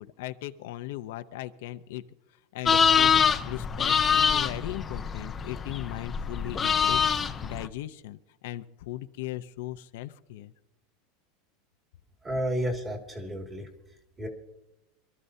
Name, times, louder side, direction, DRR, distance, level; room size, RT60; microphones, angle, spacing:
voice 1, 0.0-2.0 2.5-3.2 3.5-10.5, left 14 dB, 70° left, 9 dB, 0.7 m, -38 dB
sound 1, 2.6-7.7, left 6 dB, 15° left, 0.6 m, -25 dB
voice 2, 12.2-13.7 14.2-14.3, equal, 15° right, 1 dB, 2.3 m, -31 dB
26.5 x 13.5 x 2.8 m, 0.89 s
supercardioid pair, 165°, 0 cm